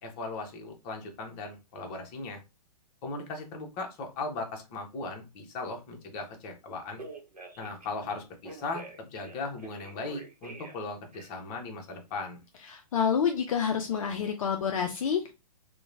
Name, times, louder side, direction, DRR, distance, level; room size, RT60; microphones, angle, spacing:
voice 1, 0.0-2.4 3.0-7.0 7.6-12.4, left 3 dB, 30° left, 3 dB, 0.8 m, -38 dB
Telephone, 6.7-7.9 8.4-10.8 11.1-11.5, right 3 dB, 90° right, 0.8 m, -46 dB
voice 2, 12.7-15.3, left 7 dB, 60° left, 4 dB, 0.4 m, -28 dB
2.9 x 2.1 x 2.5 m, 0.26 s
figure-of-eight pair, 120°, 20 cm